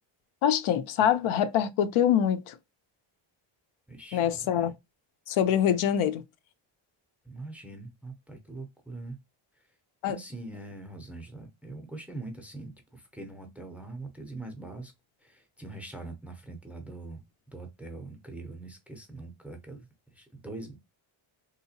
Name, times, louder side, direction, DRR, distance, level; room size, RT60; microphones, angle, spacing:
voice 1, 0.4-2.5 4.1-4.7 5.3-6.2 10.0-10.2, left 9 dB, 75° left, 0.6 m, -24 dB
voice 2, 3.9-4.7 7.2-9.2 10.0-14.9 15.2-17.2 17.5-20.8, right 2 dB, 5° right, 0.5 m, -43 dB
3.5 x 2.8 x 2.7 m
wide cardioid pair, 160°, 49 cm